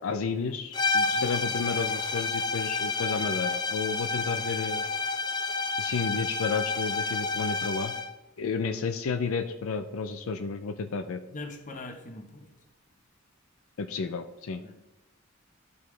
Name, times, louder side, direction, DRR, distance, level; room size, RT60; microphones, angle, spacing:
voice 1, 0.0-4.9 5.8-7.9 8.4-11.2 13.8-14.6, left 5 dB, 85° left, 7 dB, 0.5 m, -32 dB
sound 1, 0.7-8.2, left 4 dB, 20° left, 0.5 m, -29 dB
voice 2, 1.1-1.6 11.3-12.5 14.6-14.7, left 2 dB, 40° left, 4 dB, 1.1 m, -42 dB
12.5 x 5.5 x 3.3 m, 0.99 s
head